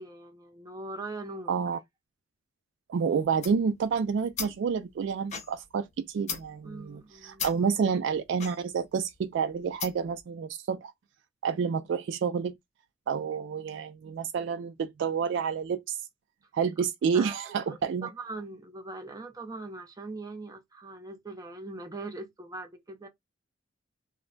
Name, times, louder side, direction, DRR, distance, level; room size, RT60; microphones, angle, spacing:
voice 1, 0.0-1.6 6.6-7.4 17.1-23.1, right 2 dB, 20° right, 0.6 m, -41 dB
voice 2, 1.5-1.8 2.9-10.9 11.4-12.5 13.1-16.0 16.5-18.1, right 6 dB, 65° right, 0.3 m, -29 dB
sound 1, 3.2-10.2, left 6 dB, 35° left, 0.5 m, -41 dB
2.1 x 2.1 x 3.7 m
head